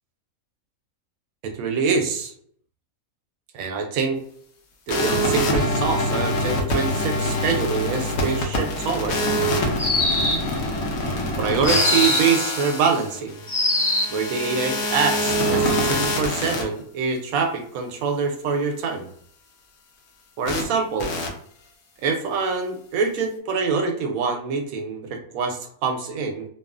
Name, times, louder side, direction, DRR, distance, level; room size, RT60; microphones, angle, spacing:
voice 1, 1.4-2.3 3.5-4.2 4.9-9.2 11.4-13.4 14.1-19.1 20.4-21.1 22.0-26.5, right 5 dB, 75° right, 4 dB, 1.0 m, -25 dB
sound 1, 4.9-16.6 20.5-20.6 21.0-21.3, left 1 dB, 80° left, 1.1 m, -25 dB
sound 2, 9.8-10.6 11.6-12.4 13.5-14.2, left 1 dB, 35° left, 0.4 m, -22 dB
2.7 x 2.4 x 2.3 m, 0.63 s
omnidirectional pair, 1.5 m